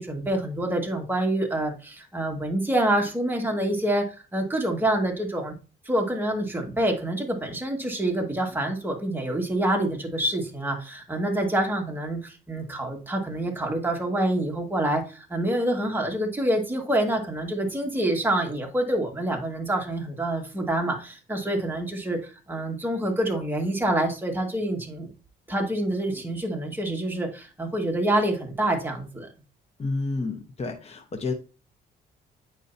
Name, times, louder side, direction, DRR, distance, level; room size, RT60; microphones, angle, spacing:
voice 1, 0.0-4.0 4.3-5.5 5.9-25.1 25.5-29.3, right 1 dB, 10° right, 1 dB, 2.0 m, -27 dB
voice 2, 29.8-31.3, left 3 dB, 30° left, 4 dB, 1.1 m, -30 dB
9.3 x 4.7 x 2.8 m, 0.34 s
cardioid pair, 90°, 20 cm